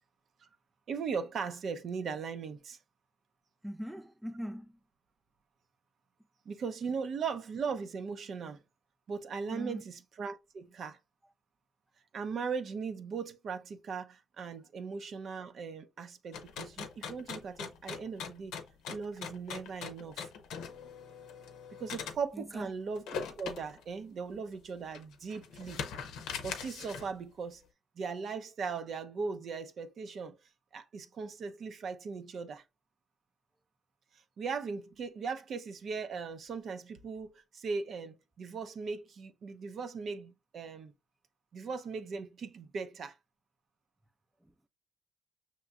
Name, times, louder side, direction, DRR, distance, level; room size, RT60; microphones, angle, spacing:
voice 1, 0.9-2.8 6.5-8.6 9.1-11.0 12.1-18.5 18.9-20.3 21.8-25.8 26.4-27.6 28.0-30.4 30.7-32.6 34.1-40.9 41.5-43.1, right 5 dB, 60° right, 0.6 m, -38 dB
voice 2, 3.6-4.7 9.5-9.8 22.3-22.7 44.4-44.5, equal, 5° right, 0.3 m, -41 dB
sound 1, 16.3-22.2 22.9-23.8 24.3-24.4 24.9-27.1, left 6 dB, 90° left, 0.6 m, -41 dB
5.7 x 3.0 x 2.3 m
cardioid pair, 90°, 0 cm